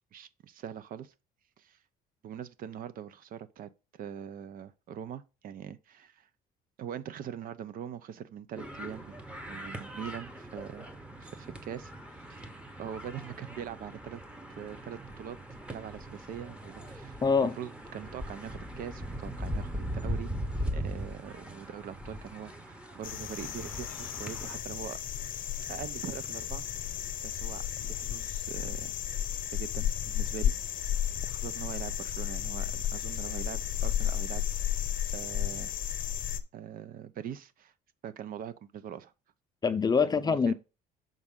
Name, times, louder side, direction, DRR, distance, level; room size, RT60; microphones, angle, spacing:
voice 1, 0.1-1.1 1.6-1.8 2.2-6.3 6.8-9.2 9.5-10.9 11.2-12.4 12.8-14.2 14.6-15.4 15.7-20.3 20.7-25.0 25.7-26.6 27.2-28.9 29.5-30.5 31.2-34.4 35.1-35.7 36.5-37.7 38.0-39.1 40.0-40.5, right 9 dB, 55° right, 0.5 m, -42 dB
sound 1, 8.6-24.6, equal, 5° right, 0.9 m, -40 dB
voice 2, 17.2-17.5 39.6-40.5, left 5 dB, 25° left, 0.5 m, -25 dB
sound 2, 23.0-36.4, left 10 dB, 55° left, 0.8 m, -33 dB
6.1 x 5.3 x 3.6 m
cardioid pair, 110°, 17 cm